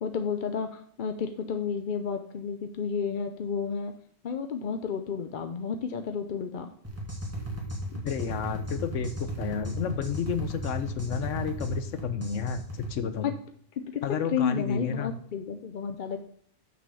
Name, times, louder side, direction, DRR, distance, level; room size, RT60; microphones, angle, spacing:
voice 1, 0.0-3.9 4.2-6.7 7.9-8.0 13.2-13.3 13.8-16.2, left 6 dB, 50° left, 7 dB, 0.7 m, -31 dB
sound 1, 6.8-12.9, equal, 10° right, 2.0 m, -35 dB
voice 2, 8.0-13.3 14.0-15.1, left 6 dB, 75° left, 10 dB, 1.1 m, -31 dB
6.1 x 6.1 x 7.0 m, 0.63 s
omnidirectional pair, 1.3 m